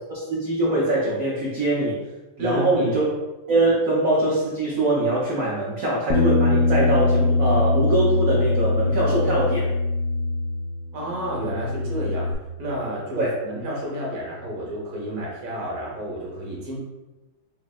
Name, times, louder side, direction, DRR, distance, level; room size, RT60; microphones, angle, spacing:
voice 1, 0.1-2.0 2.4-3.1 3.5-9.7 13.2-13.3, right 2 dB, 60° right, -6 dB, 0.9 m, -23 dB
voice 2, 2.4-2.9 10.9-12.3 12.6-16.7, right 1 dB, 85° right, -4 dB, 1.8 m, -30 dB
Bass guitar, 6.1-10.9 11.2-12.3, left 3 dB, 75° left, 1.2 m, -22 dB
6.2 x 2.1 x 2.4 m, 1.1 s
omnidirectional pair, 2.2 m